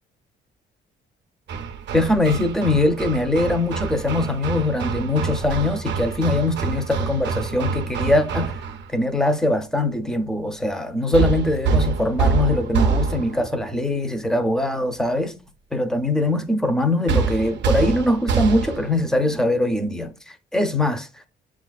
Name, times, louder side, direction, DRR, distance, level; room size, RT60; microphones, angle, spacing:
Hammer, 1.5-8.9 11.1-13.5 17.1-19.0, right 5 dB, 65° right, 0.5 m, -25 dB
voice 1, 1.9-8.6 8.9-15.4 15.7-21.3, left 1 dB, 5° left, 0.6 m, -22 dB
7.2 x 2.4 x 2.3 m
cardioid pair, 90°, 20 cm